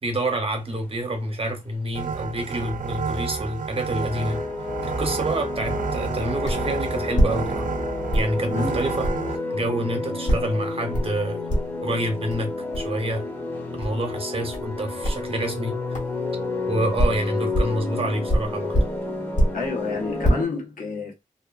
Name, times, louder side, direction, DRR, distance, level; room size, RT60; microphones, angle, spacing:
voice 1, 0.0-4.4 4.8-7.7 8.1-9.1 9.5-11.4 11.8-13.2 13.8-15.8 16.7-18.8, right 1 dB, 45° right, 0.8 m, -28 dB
sound 1, 0.7-1.0 1.7-1.8 2.3-2.4 3.3-3.5 3.8-20.5, left 3 dB, 15° left, 0.7 m, -31 dB
sound 2, 1.9-9.4, right 5 dB, 80° right, 0.4 m, -30 dB
sound 3, 6.4-6.7 7.1-7.8 8.1-8.4 9.0-9.2 10.3-10.5 10.9-11.2 11.5-11.9 12.3-12.4 12.7-12.9 13.8-14.0 14.5-14.7 15.0-15.3 15.9-16.1 16.7-17.8 18.3-19.7 20.0-20.3, equal, 65° left, 1.3 m, -23 dB
voice 2, 8.5-8.9 19.5-21.1, left 4 dB, 80° left, 1.1 m, -29 dB
2.7 x 2.4 x 2.3 m
wide cardioid pair, 95°, 14 cm